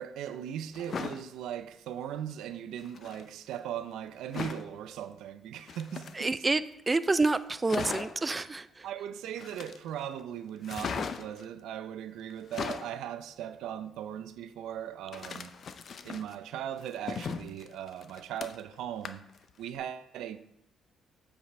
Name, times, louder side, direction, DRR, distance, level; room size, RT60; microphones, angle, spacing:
voice 1, 0.0-6.3 8.8-15.5 16.0-19.2 19.6-20.4, right 10 dB, 85° right, 0.5 m, -39 dB
sound 1, 0.7-1.2 2.8-3.2 4.3-4.7 5.6-6.6 7.0-7.1 7.3-7.4 7.7-8.3 9.4-10.0 10.6-11.4 12.3-13.0 15.1-16.4 16.8-18.7 19.0-19.4 19.7-19.8, left 6 dB, 55° left, 0.5 m, -38 dB
voice 2, 6.1-8.9, right 3 dB, 25° right, 0.3 m, -28 dB
8.0 x 5.0 x 4.2 m
cardioid pair, 90°, 0 cm